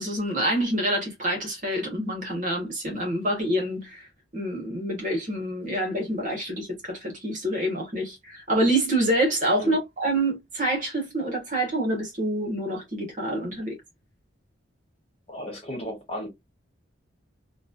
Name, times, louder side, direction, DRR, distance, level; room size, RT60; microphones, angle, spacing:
voice 1, 0.0-4.1 4.3-13.8, right 1 dB, 40° right, 1.2 m, -27 dB
voice 2, 15.3-16.3, equal, 30° left, 1.3 m, -34 dB
3.0 x 2.3 x 2.5 m
head